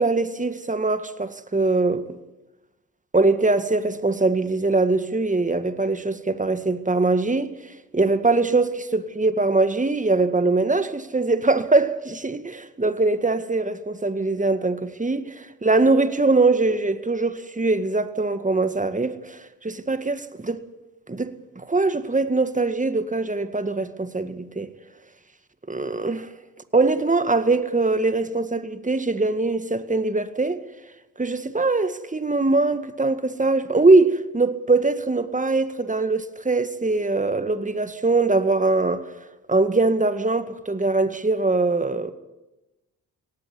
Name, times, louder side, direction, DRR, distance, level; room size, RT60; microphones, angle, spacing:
voice 1, 0.0-2.2 3.1-7.5 7.9-20.6 21.1-24.7 25.7-26.3 26.7-30.6 31.2-39.0 39.5-42.1, right 3 dB, 20° right, 1.9 m, -22 dB
18.0 x 16.0 x 9.7 m
hypercardioid pair, 40°, 40 cm